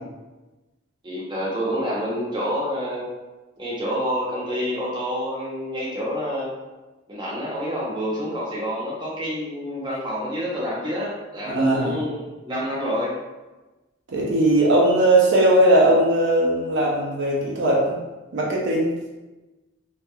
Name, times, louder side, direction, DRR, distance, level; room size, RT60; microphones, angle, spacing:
voice 1, 1.0-3.1 3.6-6.5 7.1-13.1, equal, 25° right, -5 dB, 0.8 m, -28 dB
voice 2, 11.5-11.9 14.1-18.0 18.3-18.9, right 1 dB, 65° right, -3 dB, 0.6 m, -19 dB
3.1 x 2.9 x 2.3 m, 1.1 s
head